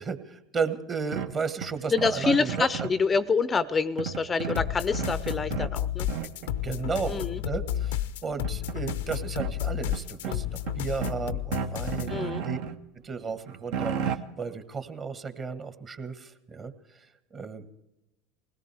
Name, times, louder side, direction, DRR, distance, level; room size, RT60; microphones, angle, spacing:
voice 1, 0.0-2.9 6.6-12.6 13.0-17.6, right 5 dB, 35° right, 9 dB, 1.4 m, -34 dB
sound 1, 1.1-3.0 4.0-5.8 6.1-6.5 7.8-7.9 8.2-9.5 9.9-11.2 11.5-12.8 13.2-14.2, right 7 dB, 65° right, 0.9 m, -34 dB
voice 2, 1.9-6.1 7.1-7.4 10.3-10.4 12.1-12.4, left 5 dB, 25° left, 15 dB, 0.5 m, -27 dB
sound 2, 4.5-12.2, left 11 dB, 75° left, 0.6 m, -32 dB
20.5 x 17.5 x 3.5 m, 0.94 s
hypercardioid pair, 85°, 0 cm